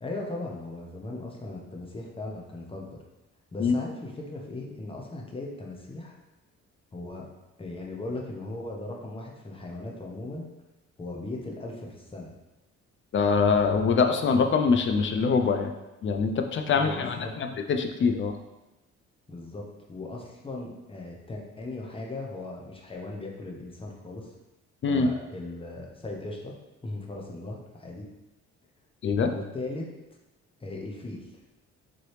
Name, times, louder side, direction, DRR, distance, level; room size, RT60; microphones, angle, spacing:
voice 1, 0.0-3.0 3.5-6.2 6.9-7.2 7.6-10.5 11.0-12.3 16.7-17.3 19.3-19.6 19.9-24.3 24.9-26.5 26.8-28.1 29.3-29.9 30.6-31.3, left 2 dB, 20° left, -1 dB, 0.8 m, -38 dB
voice 2, 13.1-15.7 16.0-18.4 24.8-25.1 29.0-29.3, left 5 dB, 40° left, 6 dB, 0.4 m, -24 dB
3.8 x 3.1 x 3.3 m, 1.0 s
cardioid pair, 90°, 30 cm